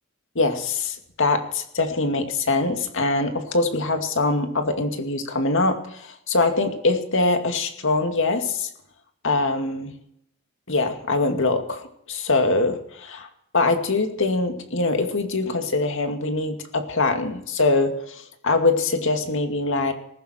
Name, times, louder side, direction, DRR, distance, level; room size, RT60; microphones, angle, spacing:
voice 1, 0.4-8.7 9.2-9.9 10.7-13.3 13.5-19.9, left 3 dB, 65° left, 5 dB, 2.3 m, -23 dB
19.5 x 15.0 x 4.4 m, 0.74 s
head